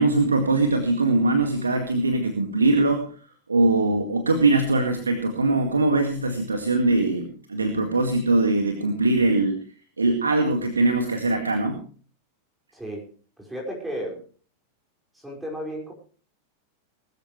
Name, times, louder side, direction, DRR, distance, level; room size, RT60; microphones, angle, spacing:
voice 1, 0.0-3.1 3.5-9.6 10.0-11.8, right 2 dB, 75° right, 5 dB, 1.9 m, -22 dB
voice 2, 12.7-13.1 13.4-14.2 15.1-15.9, equal, 5° right, -2 dB, 5.3 m, -33 dB
20.0 x 14.0 x 3.2 m, 0.41 s
figure-of-eight pair, 90°, 0 cm